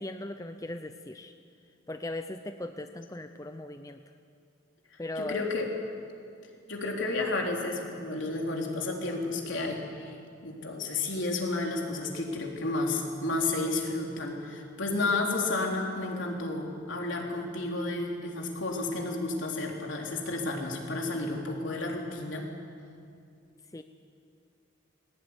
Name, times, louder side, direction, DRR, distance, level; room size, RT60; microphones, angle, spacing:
voice 1, 0.0-1.3 1.9-4.0 5.0-5.5 23.7-23.8, left 2 dB, 15° left, 7 dB, 0.6 m, -38 dB
voice 2, 5.2-5.7 6.7-10.2 10.4-22.5, left 2 dB, 70° left, 0 dB, 3.7 m, -31 dB
21.0 x 18.0 x 9.7 m, 2.4 s
head